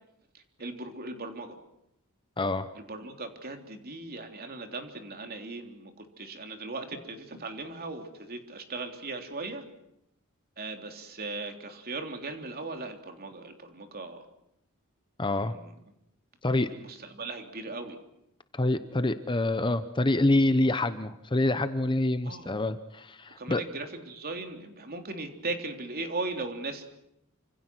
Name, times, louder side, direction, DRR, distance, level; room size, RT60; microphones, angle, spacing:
voice 1, 0.3-1.6 2.8-9.7 10.6-14.3 15.2-15.7 16.5-18.0 22.2-22.5 23.4-26.8, right 3 dB, 45° right, 5 dB, 3.5 m, -38 dB
voice 2, 2.4-2.7 15.2-15.6 16.4-16.7 18.5-23.6, left 2 dB, 20° left, 11 dB, 0.9 m, -26 dB
28.5 x 26.5 x 6.2 m, 0.79 s
head